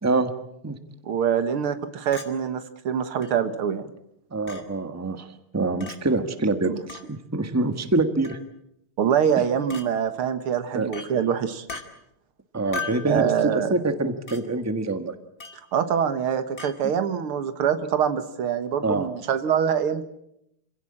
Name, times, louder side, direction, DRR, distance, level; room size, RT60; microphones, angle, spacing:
voice 1, 1.0-3.9 6.6-6.7 9.0-11.7 13.1-13.7 15.7-20.0, right 8 dB, 85° right, 10 dB, 2.3 m, -24 dB
Chink clink, 2.1-2.3 3.2-3.3 4.5-4.6 5.8-6.0 6.9-7.1 8.2-8.5 9.7-9.9 10.9-11.1 11.7-11.9 12.7-13.1 14.3-14.4 15.4-15.6 16.6-16.7, left 4 dB, 40° left, 2.6 m, -36 dB
voice 2, 4.3-5.3 5.5-8.4 10.7-10.9 12.5-15.1 18.8-19.1, right 2 dB, 10° right, 8 dB, 1.2 m, -25 dB
27.0 x 16.5 x 8.7 m, 0.79 s
omnidirectional pair, 2.3 m